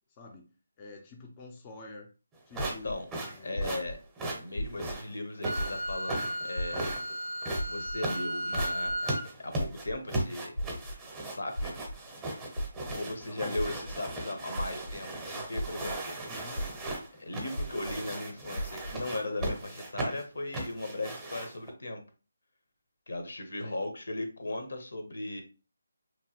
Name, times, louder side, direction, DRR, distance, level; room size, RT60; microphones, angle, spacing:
voice 1, 0.2-0.5 0.8-2.1 2.5-3.6 4.5-4.9 13.3-13.8 16.2-16.7 23.6-23.8, left 3 dB, 25° left, 1 dB, 0.4 m, -49 dB
sound 1, 2.5-21.7, right 2 dB, 10° right, 0.7 m, -37 dB
sound 2, 2.6-2.9 3.6-3.9 4.6-4.9 5.6-5.9 6.6-6.9 7.6-7.9 8.6-8.9 9.6-9.9 10.6-10.9 11.6-11.9 12.6-12.9 13.6-13.9 14.6-14.9 15.6-15.9 16.6-16.9 17.6-17.9 18.6-18.9 19.4-19.5, equal, 90° left, 0.3 m, -34 dB
voice 2, 2.6-3.1 3.4-4.0 4.3-6.9 7.6-8.9 9.4-10.5 11.3-11.9 12.9-15.1 15.3-16.2 17.2-22.0 23.1-25.4, left 2 dB, 70° left, 5 dB, 0.8 m, -37 dB
Wind instrument woodwind instrument, 5.4-9.3, equal, 50° right, 0.5 m, -35 dB
2.9 x 2.1 x 2.9 m, 0.33 s
figure-of-eight pair, 160°, 0 cm